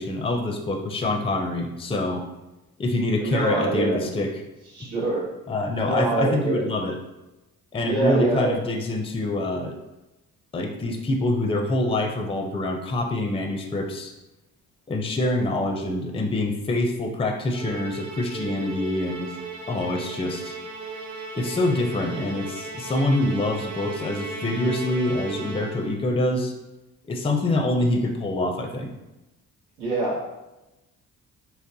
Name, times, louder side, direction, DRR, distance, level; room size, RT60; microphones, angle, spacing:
voice 1, 0.0-2.2 2.8-4.3 5.5-7.0 7.7-9.8 10.5-14.1 14.9-19.3 19.7-20.6 21.3-26.5 27.1-28.9, left 2 dB, 15° left, 4 dB, 0.4 m, -25 dB
voice 2, 3.2-4.1 4.7-5.3 5.8-6.6 7.8-8.6 29.8-30.4, right 2 dB, 85° right, -5 dB, 0.9 m, -25 dB
Musical instrument, 17.5-26.0, right 3 dB, 45° right, 0.8 m, -36 dB
3.8 x 2.1 x 2.6 m, 1.0 s
supercardioid pair, 55°, 39 cm